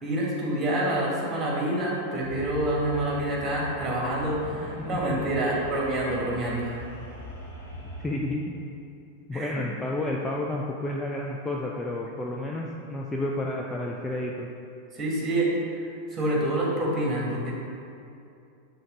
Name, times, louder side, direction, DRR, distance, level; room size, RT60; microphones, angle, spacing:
voice 1, 0.0-6.8 9.3-9.6 14.9-15.5 16.1-17.5, right 1 dB, 20° right, -3 dB, 1.5 m, -27 dB
sound 1, 2.2-8.2, equal, 75° left, 1.4 m, -41 dB
voice 2, 4.8-5.4 8.0-8.5 9.3-14.5, left 1 dB, 10° left, -2 dB, 0.4 m, -31 dB
6.4 x 3.2 x 5.0 m, 2.5 s
figure-of-eight pair, 90°, 0 cm